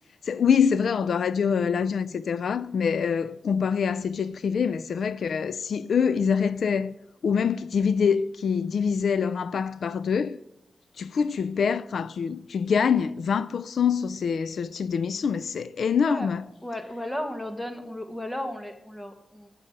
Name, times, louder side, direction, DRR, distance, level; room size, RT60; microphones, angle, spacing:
voice 1, 0.2-6.9 7.2-10.4 11.0-16.4, left 6 dB, 75° left, 0.4 m, -25 dB
voice 2, 16.6-19.5, left 1 dB, 10° left, 1.7 m, -34 dB
16.0 x 6.4 x 8.0 m
wide cardioid pair, 115°, 0 cm